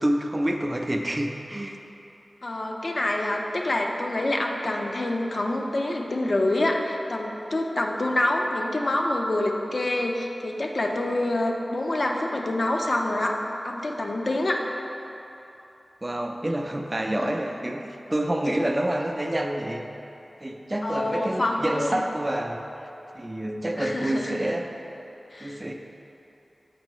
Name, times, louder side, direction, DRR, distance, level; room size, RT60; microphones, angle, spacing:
voice 1, 0.0-1.8 16.0-19.8 20.4-22.6 23.1-24.8 25.4-25.7, right 1 dB, 25° right, 3 dB, 0.5 m, -28 dB
voice 2, 2.4-13.4 13.6-14.6 17.1-17.3 20.8-22.0 23.8-24.4 25.3-25.6, left 1 dB, 55° left, 1 dB, 0.6 m, -26 dB
7.6 x 5.3 x 3.1 m, 2.9 s
wide cardioid pair, 85°, 0 cm